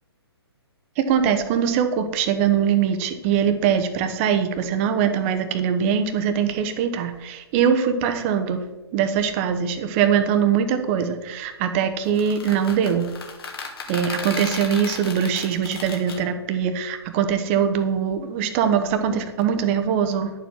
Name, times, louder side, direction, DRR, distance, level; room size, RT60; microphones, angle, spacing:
voice 1, 1.0-8.6 8.9-13.1 13.9-20.3, right 8 dB, 30° right, 8 dB, 1.1 m, -22 dB
sound 1, 12.0-16.2, left 4 dB, 60° left, 2.5 m, -34 dB
10.5 x 7.3 x 6.0 m, 1.1 s
figure-of-eight pair, 125°, 14 cm